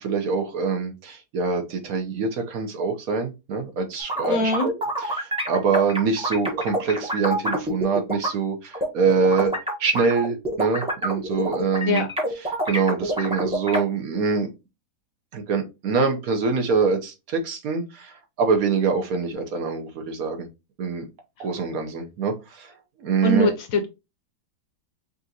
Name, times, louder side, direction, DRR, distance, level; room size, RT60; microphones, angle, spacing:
voice 1, 0.0-4.7 5.1-9.5 9.8-12.0 12.7-14.5 15.3-20.5 20.8-21.1 21.4-23.5, right 5 dB, 65° right, 4 dB, 1.2 m, -24 dB
sound 1, 4.0-8.3 8.7-13.8, equal, 5° right, 0.8 m, -27 dB
voice 2, 4.3-4.7 11.9-12.1 23.2-23.9, left 2 dB, 65° left, 7 dB, 1.0 m, -22 dB
5.4 x 2.5 x 2.7 m, 0.25 s
omnidirectional pair, 1.7 m